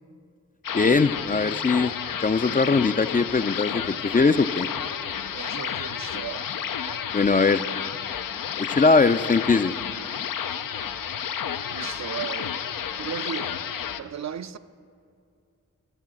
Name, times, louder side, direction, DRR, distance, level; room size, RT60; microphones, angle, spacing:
sound 1, 0.6-14.0, left 8 dB, 80° left, 0.5 m, -31 dB
voice 1, 0.7-1.9 2.2-4.7 7.1-7.6 8.6-9.7, left 4 dB, 25° left, 0.4 m, -21 dB
voice 2, 5.3-7.0 11.7-12.5 13.0-13.6 14.0-14.6, right 8 dB, 55° right, 0.5 m, -36 dB
11.0 x 6.6 x 7.7 m
cardioid pair, 45°, 33 cm